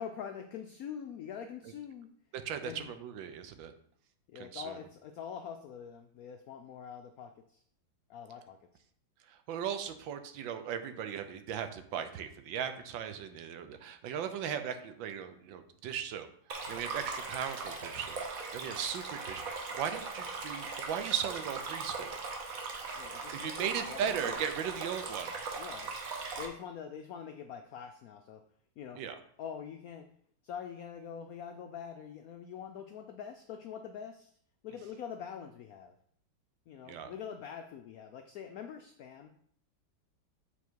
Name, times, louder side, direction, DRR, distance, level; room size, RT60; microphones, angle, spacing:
voice 1, 0.0-2.1 2.6-2.9 4.3-7.6 8.1-8.6 22.9-24.4 25.6-25.9 26.4-28.4 28.8-29.0 29.4-30.1 30.4-34.3 34.6-35.9 36.7-39.3, left 7 dB, 85° left, 6 dB, 0.7 m, -44 dB
voice 2, 2.4-3.7 4.4-4.8 9.3-16.3 16.7-22.2 23.4-25.6 29.0-29.2 36.9-37.1, right 8 dB, 80° right, 9 dB, 1.4 m, -37 dB
Stream, 16.5-26.5, right 4 dB, 55° right, 1.3 m, -39 dB
7.0 x 4.3 x 4.6 m, 0.64 s
omnidirectional pair, 2.1 m